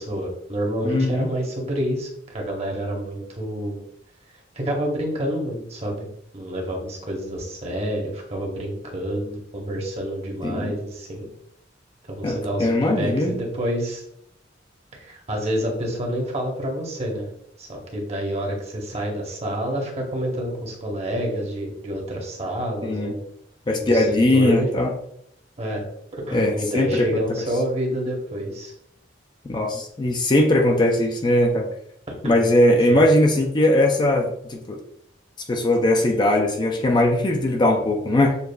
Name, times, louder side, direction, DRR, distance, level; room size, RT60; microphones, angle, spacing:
voice 1, 0.0-3.8 4.5-6.1 6.3-11.3 12.2-14.0 14.9-17.3 17.6-23.2 23.8-24.7 25.6-25.8 26.3-28.7 32.1-32.4 32.9-33.0, equal, 35° right, 0 dB, 0.9 m, -28 dB
voice 2, 0.8-1.3 10.4-10.7 12.2-13.4 22.8-23.1 23.7-24.9 26.3-27.2 29.4-31.7 32.2-34.8 35.5-38.4, left 1 dB, 25° left, 2 dB, 0.4 m, -20 dB
6.7 x 2.3 x 2.2 m, 0.75 s
head